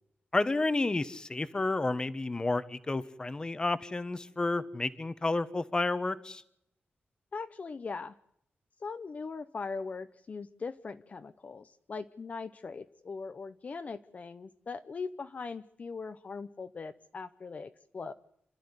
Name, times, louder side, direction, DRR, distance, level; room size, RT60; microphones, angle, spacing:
voice 1, 0.3-6.4, left 2 dB, 20° left, 14 dB, 1.1 m, -31 dB
voice 2, 7.3-8.1 8.8-18.1, left 4 dB, 45° left, 10 dB, 0.8 m, -40 dB
28.5 x 13.0 x 9.7 m, 0.73 s
wide cardioid pair, 150°, 4 cm